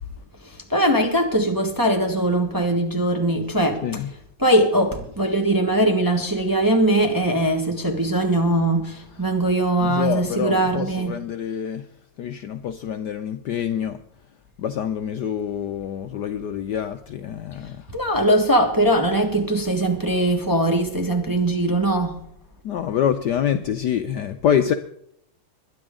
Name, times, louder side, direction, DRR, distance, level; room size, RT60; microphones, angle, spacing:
voice 1, 0.7-3.8 4.4-11.2 17.9-22.2, right 1 dB, 10° right, 1.1 m, -21 dB
voice 2, 9.8-11.9 12.2-14.0 14.6-17.9 22.6-24.7, left 9 dB, 70° left, 1.1 m, -26 dB
21.0 x 11.0 x 3.7 m
omnidirectional pair, 2.3 m